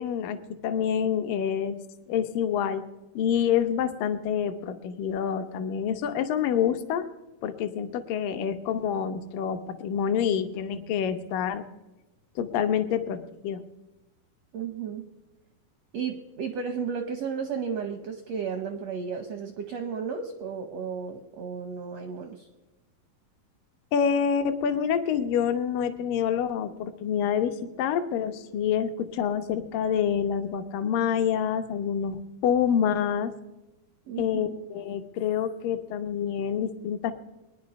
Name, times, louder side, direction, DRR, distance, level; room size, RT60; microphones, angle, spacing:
voice 1, 0.0-1.8 2.1-2.9 3.2-7.1 7.4-11.7 12.4-13.6 23.9-33.3 34.2-37.1, left 8 dB, 75° left, 8 dB, 2.4 m, -27 dB
voice 2, 14.5-15.1 15.9-22.5 34.0-34.6, right 6 dB, 80° right, 7 dB, 1.4 m, -33 dB
22.5 x 9.9 x 5.2 m, 1.0 s
omnidirectional pair, 4.2 m